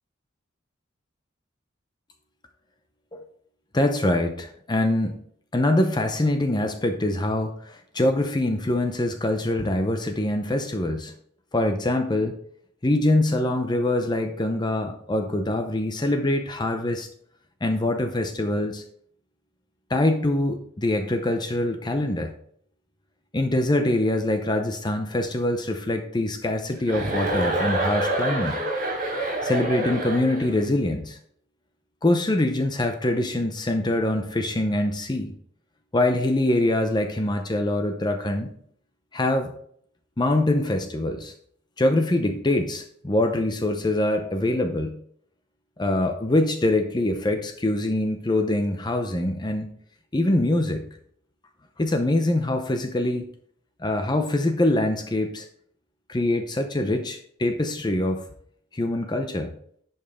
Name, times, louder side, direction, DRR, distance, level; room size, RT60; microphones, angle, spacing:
voice 1, 3.7-5.2 5.5-11.1 11.5-12.4 12.8-17.1 17.6-18.8 19.9-22.3 23.3-28.6 29.4-31.2 32.0-35.3 35.9-38.5 39.1-39.5 40.2-41.3 41.8-45.0 45.8-49.7 50.1-50.8 51.8-53.2 53.8-55.5 56.1-58.2 58.7-59.5, left 1 dB, 20° left, 6 dB, 0.7 m, -24 dB
Chuckle chortle, 26.9-30.6, right 1 dB, 45° right, 3.5 m, -27 dB
10.5 x 5.5 x 3.6 m, 0.62 s
head